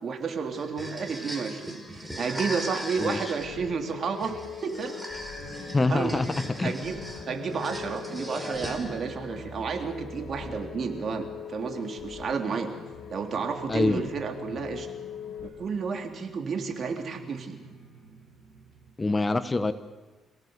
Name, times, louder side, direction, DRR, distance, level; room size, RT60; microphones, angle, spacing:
voice 1, 0.0-4.9 5.9-6.2 6.6-7.0 7.3-12.7 13.1-14.9 15.4-17.6, right 5 dB, 55° right, 5 dB, 3.4 m, -31 dB
sound 1, 0.5-9.2, equal, 10° right, 4.2 m, -39 dB
sound 2, 3.0-15.5, left 8 dB, 65° left, 1.7 m, -42 dB
sound 3, 5.3-18.9, right 4 dB, 80° right, 6.0 m, -48 dB
voice 2, 5.7-6.8 13.7-14.0 19.0-19.7, left 3 dB, 20° left, 12 dB, 1.2 m, -25 dB
27.5 x 17.5 x 8.1 m, 1.2 s
cardioid pair, 90°, 0 cm